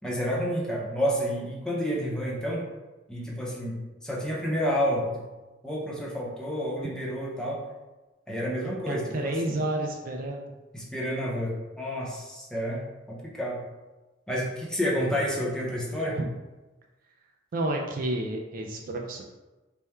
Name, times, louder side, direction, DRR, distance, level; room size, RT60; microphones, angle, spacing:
voice 1, 0.0-2.6 3.1-5.3 5.6-7.6 8.3-9.6 10.7-12.8 13.1-13.6 14.3-16.2, equal, 5° left, -4 dB, 0.7 m, -30 dB
voice 2, 8.9-10.5 16.2-16.3 17.5-19.2, right 1 dB, 50° right, 2 dB, 0.4 m, -30 dB
3.5 x 2.2 x 4.2 m, 1.1 s
head